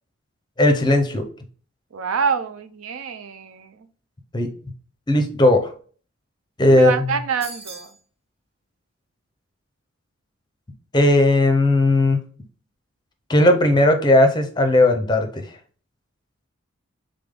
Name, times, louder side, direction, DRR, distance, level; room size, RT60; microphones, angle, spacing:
voice 1, 0.6-1.3 4.3-4.5 5.1-5.7 6.6-6.9 10.9-12.2 13.3-15.5, left 1 dB, 20° left, 6 dB, 0.5 m, -16 dB
voice 2, 1.9-3.9 6.7-7.9, right 6 dB, 85° right, 9 dB, 0.5 m, -26 dB
sound 1, 7.4-8.0, right 2 dB, 30° right, 0.8 m, -38 dB
3.8 x 3.4 x 3.6 m, 0.44 s
head